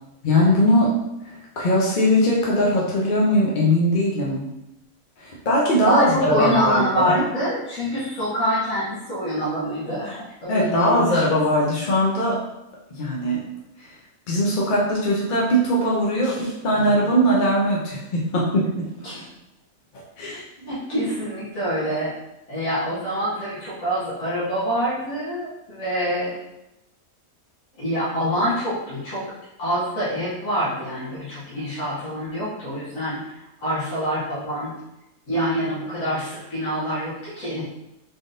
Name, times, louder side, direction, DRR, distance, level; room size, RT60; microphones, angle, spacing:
voice 1, 0.2-0.9 1.2-4.5 5.2-7.2 10.5-12.4 12.9-13.4 13.8-13.9 14.3-18.7 20.2-20.4, equal, 50° left, -4 dB, 0.6 m, -20 dB
voice 2, 5.8-11.3 16.2-16.9 19.0-19.3 20.3-22.1 22.5-26.3 27.8-29.2 29.6-33.2 33.6-34.7 35.3-37.7, equal, 65° left, -11 dB, 1.6 m, -26 dB
3.8 x 3.5 x 2.6 m, 0.89 s
omnidirectional pair, 1.5 m